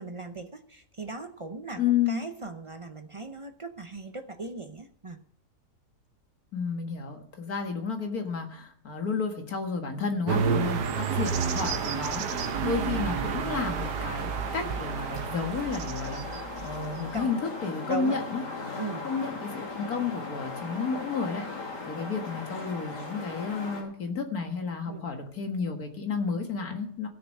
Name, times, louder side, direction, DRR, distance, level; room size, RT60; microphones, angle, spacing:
voice 1, 0.0-1.8 2.1-5.2 16.9-17.3 17.9-18.2 18.8-19.1 24.9-25.0, right 3 dB, 55° right, 6 dB, 0.3 m, -38 dB
voice 2, 1.8-2.2 6.5-14.3 14.5-18.4 19.0-27.1, left 5 dB, 60° left, 4 dB, 2.2 m, -31 dB
sound 1, 10.3-23.8, left 3 dB, 85° left, 3.3 m, -40 dB
sound 2, 10.3-17.2, right 6 dB, 85° right, 1.5 m, -30 dB
16.0 x 6.8 x 6.5 m, 0.63 s
omnidirectional pair, 1.8 m